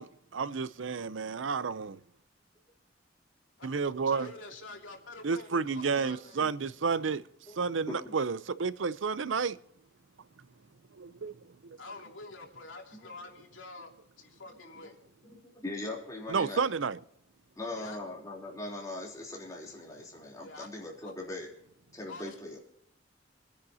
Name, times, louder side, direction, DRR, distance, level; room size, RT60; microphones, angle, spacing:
voice 1, 0.0-2.0 3.6-4.3 5.2-7.2 7.6-9.6 11.0-11.4 16.3-17.0, right 5 dB, 90° right, 0.6 m, -31 dB
voice 2, 4.0-5.5 5.8-6.4 11.8-13.9 14.2-14.9 17.8-18.0 20.4-20.7 21.0-21.1 22.1-22.3, left 3 dB, 90° left, 2.9 m, -47 dB
voice 3, 6.0-6.5 7.5-7.6 7.9-8.1 12.9-13.1 15.2-16.7 17.6-21.5 21.9-22.6, left 2 dB, 20° left, 3.5 m, -41 dB
27.0 x 10.0 x 2.8 m
head